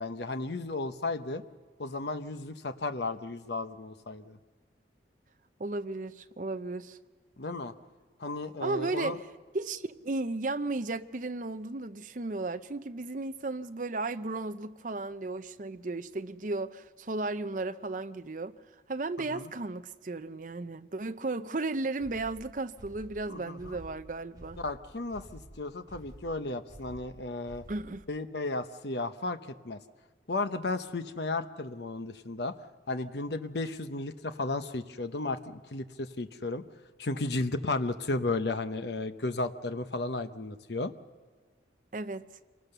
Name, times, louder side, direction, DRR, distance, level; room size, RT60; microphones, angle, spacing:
voice 1, 0.0-1.4 1.8-4.4 7.4-7.7 8.2-9.2 19.3-19.5 23.3-23.8 24.6-27.6 28.1-29.8 30.3-32.5 32.9-36.6 37.0-40.9, left 2 dB, 65° left, 10 dB, 0.9 m, -34 dB
voice 2, 5.6-7.0 8.6-9.2 9.5-18.5 18.9-24.6 27.7-28.0 41.9-42.2, right 3 dB, 45° right, 10 dB, 0.6 m, -34 dB
sound 1, 22.0-28.1, equal, 20° right, 2.5 m, -50 dB
26.5 x 19.0 x 6.8 m, 1.5 s
head